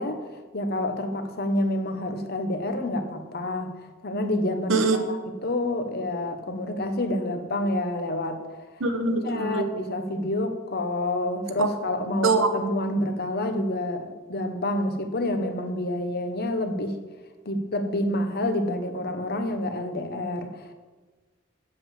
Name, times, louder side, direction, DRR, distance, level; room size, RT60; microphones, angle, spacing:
voice 1, 0.0-3.7 4.0-8.6 9.2-17.0 17.4-20.7, left 1 dB, 55° left, 7 dB, 1.1 m, -28 dB
voice 2, 8.8-9.7 11.6-11.7 12.2-12.5, right 3 dB, 85° right, 6 dB, 1.2 m, -23 dB
7.8 x 7.1 x 7.5 m, 1.3 s
head